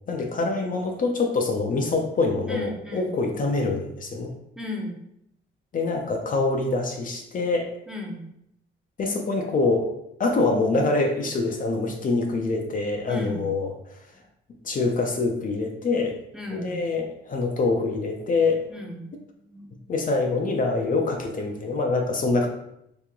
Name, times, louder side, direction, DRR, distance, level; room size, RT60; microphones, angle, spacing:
voice 1, 0.1-4.3 5.7-7.7 9.0-9.9 10.2-13.7 14.6-16.1 16.5-18.6 19.9-22.5, left 3 dB, 45° left, 2 dB, 0.6 m, -25 dB
voice 2, 2.5-3.2 4.6-5.0 7.9-8.2 13.1-13.5 16.3-16.8 18.7-19.1 19.5-19.7, left 2 dB, 5° right, -1 dB, 0.7 m, -35 dB
3.0 x 2.7 x 3.6 m, 0.79 s
cardioid pair, 90°, 20 cm